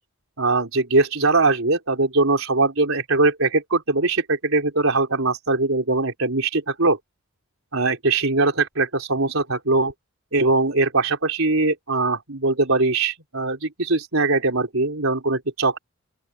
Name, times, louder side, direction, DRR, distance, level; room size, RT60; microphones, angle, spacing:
voice 1, 0.4-7.0 7.7-9.9 10.3-15.8, right 3 dB, 85° right, 4.2 m, -21 dB
open air
head